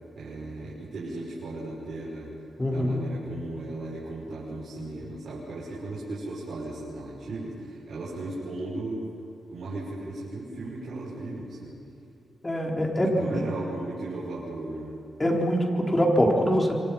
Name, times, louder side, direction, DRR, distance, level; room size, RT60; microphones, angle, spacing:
voice 1, 0.1-2.3 2.7-9.1 9.5-11.8 13.2-15.0, right 2 dB, 65° right, -7 dB, 6.4 m, -36 dB
voice 2, 2.6-3.0 12.4-13.3 15.2-16.8, equal, 20° left, 0 dB, 4.6 m, -23 dB
27.0 x 25.0 x 5.9 m, 2.7 s
cardioid pair, 70°, 0 cm